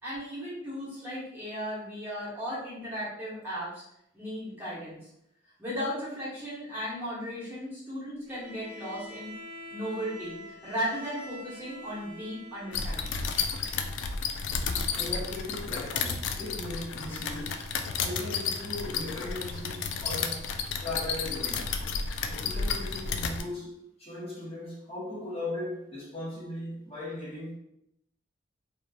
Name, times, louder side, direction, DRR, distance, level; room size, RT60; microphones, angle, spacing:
voice 1, 0.0-3.8 4.1-5.1 5.6-9.3 9.7-13.2, equal, 10° right, 1.0 m, -36 dB
Bowed string instrument, 8.3-13.9, left 1 dB, 40° right, 0.8 m, -46 dB
sound 1, 12.7-23.4, left 5 dB, 75° left, 0.3 m, -32 dB
voice 2, 14.9-17.6 18.0-20.5 20.8-21.7 22.3-27.6, left 2 dB, 30° left, 1.0 m, -38 dB
3.0 x 2.3 x 2.2 m
head